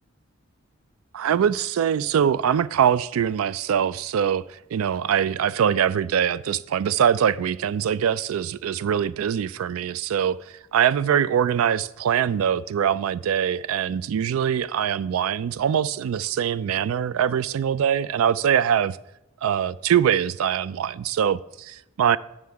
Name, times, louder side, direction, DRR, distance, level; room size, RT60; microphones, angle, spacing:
voice 1, 1.1-4.4 4.7-10.4 10.7-19.0 19.4-22.2, right 8 dB, 90° right, 0.3 m, -23 dB
9.4 x 6.5 x 3.5 m
head